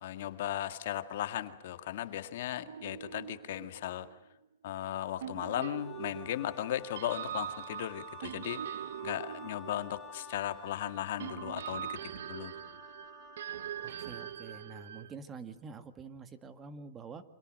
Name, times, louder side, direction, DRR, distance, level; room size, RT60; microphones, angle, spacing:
voice 1, 0.0-4.1 4.6-8.6 9.0-12.0 12.3-12.5, left 12 dB, 55° left, 9 dB, 1.9 m, -36 dB
sound 1, 2.7-4.4 5.2-10.6 11.2-15.1, right 10 dB, 70° right, 0.9 m, -43 dB
Wind instrument woodwind instrument, 5.5-14.7, left 2 dB, 10° left, 7.5 m, -54 dB
Bowed string instrument, 5.8-10.8, left 20 dB, 25° left, 2.8 m, -54 dB
voice 2, 13.8-17.2, right 5 dB, 15° right, 10 dB, 1.8 m, -47 dB
29.5 x 26.0 x 6.5 m, 0.91 s
hypercardioid pair, 160°, 0 cm